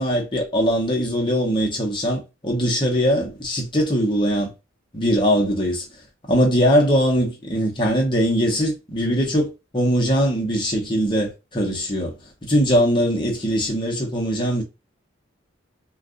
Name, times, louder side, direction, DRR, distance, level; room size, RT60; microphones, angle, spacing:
voice 1, 0.0-4.5 4.9-5.9 6.3-9.5 9.7-14.6, equal, 25° left, 0.8 m, -21 dB
2.5 x 2.4 x 3.6 m
head